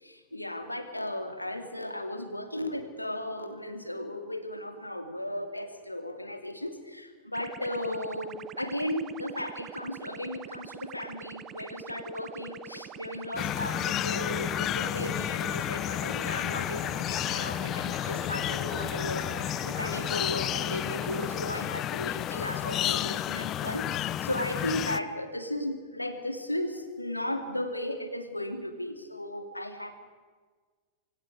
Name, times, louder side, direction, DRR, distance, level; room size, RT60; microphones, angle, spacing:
voice 1, 0.0-30.0, left 1 dB, 85° left, 7 dB, 2.6 m, -35 dB
sound 1, 7.3-21.3, right 10 dB, 30° right, 0.8 m, -45 dB
sound 2, 13.4-25.0, left 12 dB, 35° left, 0.9 m, -31 dB
27.0 x 25.5 x 4.8 m, 1.5 s
figure-of-eight pair, 90°, 0 cm